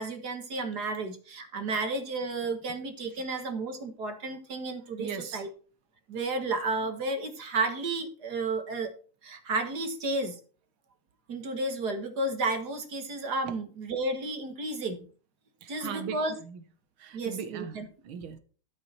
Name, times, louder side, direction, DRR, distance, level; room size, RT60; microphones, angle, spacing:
voice 1, 0.0-5.5 6.1-8.9 9.2-10.4 11.3-15.1 15.7-16.4 17.1-17.9, right 3 dB, 50° right, 1.9 m, -32 dB
voice 2, 5.0-5.4 15.6-16.6 17.0-18.4, right 7 dB, 75° right, 2.0 m, -39 dB
12.5 x 7.6 x 4.4 m
omnidirectional pair, 2.4 m